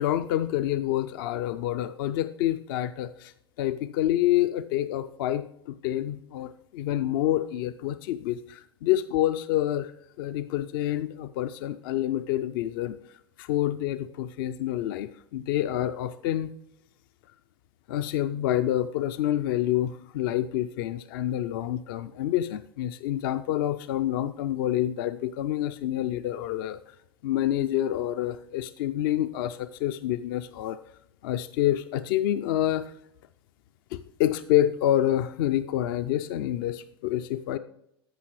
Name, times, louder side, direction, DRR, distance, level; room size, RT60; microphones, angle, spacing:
voice 1, 0.0-3.3 3.6-9.9 10.2-13.0 13.4-16.5 17.9-26.8 27.2-30.8 31.2-32.9 33.9-37.6, left 12 dB, 60° left, 11 dB, 0.4 m, -27 dB
14.5 x 5.6 x 3.2 m, 0.78 s
hypercardioid pair, 95°, 13 cm